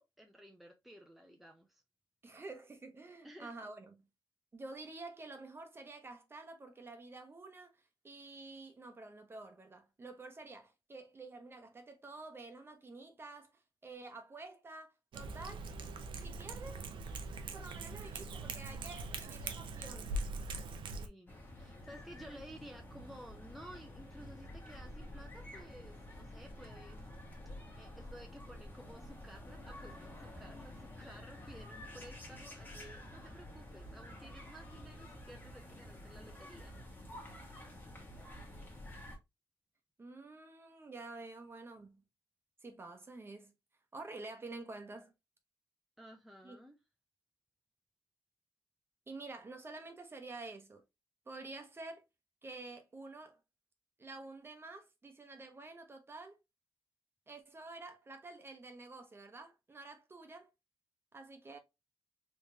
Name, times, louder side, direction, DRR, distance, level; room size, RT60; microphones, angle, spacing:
voice 1, 0.0-1.8 3.2-3.5 20.9-27.0 27.8-36.7 46.0-46.8, right 1 dB, ahead, 0.6 m, -54 dB
voice 2, 2.2-4.0 4.5-7.7 8.0-15.7 16.2-16.8 17.5-20.1 24.2-24.3 40.0-42.0 42.6-43.5 43.9-45.1 46.4-46.6 49.1-50.8 51.3-52.0 52.4-53.4 54.0-56.4 57.3-60.5 61.1-61.6, right 3 dB, 30° right, 0.9 m, -49 dB
Cat, 15.1-21.1, right 2 dB, 90° right, 0.6 m, -42 dB
sound 1, 21.3-39.2, left 1 dB, 25° left, 1.2 m, -50 dB
3.6 x 3.2 x 2.7 m
cardioid pair, 115°, 8 cm